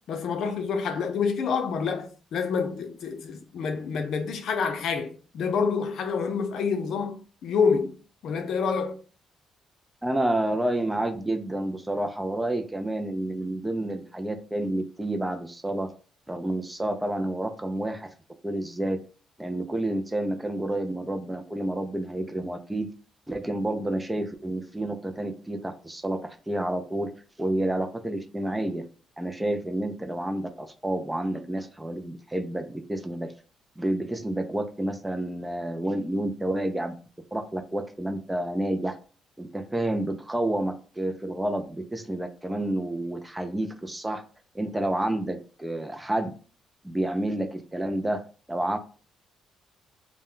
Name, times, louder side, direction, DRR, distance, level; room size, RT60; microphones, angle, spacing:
voice 1, 0.1-8.0 8.2-9.0, left 5 dB, 70° left, 0.5 m, -27 dB
voice 2, 10.0-15.9 16.3-18.1 18.4-19.0 19.4-22.9 23.3-27.1 27.4-28.8 29.2-33.3 33.8-36.9 37.3-39.0 39.4-44.2 44.5-46.3 46.8-48.2 48.5-48.8, right 1 dB, 10° right, 0.3 m, -29 dB
2.1 x 2.1 x 3.7 m
cardioid pair, 90°, 0 cm